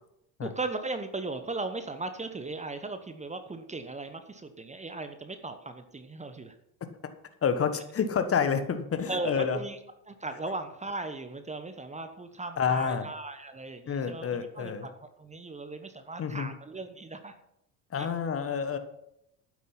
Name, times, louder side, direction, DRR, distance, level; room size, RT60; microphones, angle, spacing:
voice 1, 0.4-6.5 9.1-9.8 10.1-14.9 15.2-17.3 18.0-18.1, right 3 dB, 15° right, 8 dB, 1.1 m, -37 dB
voice 2, 7.4-9.6 12.6-13.1 13.9-14.9 16.2-16.5 17.9-18.8, left 6 dB, 30° left, 9 dB, 1.4 m, -28 dB
12.0 x 9.6 x 5.8 m, 0.80 s
figure-of-eight pair, 60°, 47 cm